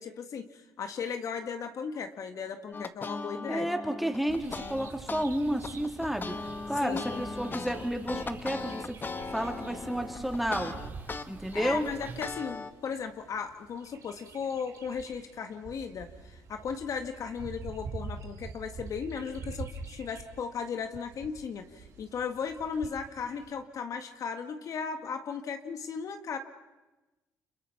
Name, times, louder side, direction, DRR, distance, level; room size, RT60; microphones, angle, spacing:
voice 1, 0.0-3.7 6.8-7.2 11.5-26.4, left 6 dB, 60° left, 6 dB, 1.9 m, -36 dB
sound 1, 2.7-5.3 5.6-11.2 11.6-12.7, left 4 dB, 30° left, 1.4 m, -38 dB
voice 2, 3.5-6.3 6.7-9.0 9.3-10.7 11.3-11.9, equal, ahead, 3 dB, 3.6 m, -31 dB
Bird vocalization bird call bird song, 4.2-23.6, right 4 dB, 55° right, 4.0 m, -47 dB
sound 2, 4.3-12.4, right 3 dB, 30° right, 5.0 m, -48 dB
29.5 x 26.0 x 5.8 m, 1.1 s
supercardioid pair, 80°, 6 cm